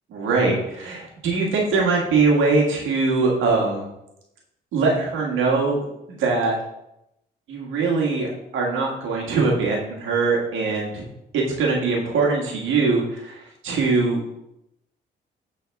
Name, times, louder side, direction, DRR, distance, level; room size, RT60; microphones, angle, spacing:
voice 1, 0.1-3.8 4.7-5.8 6.1-6.6 7.5-11.0 11.3-14.2, right 3 dB, 80° right, -2 dB, 1.7 m, -22 dB
7.0 x 4.0 x 3.4 m, 0.85 s
cardioid pair, 90°, 20 cm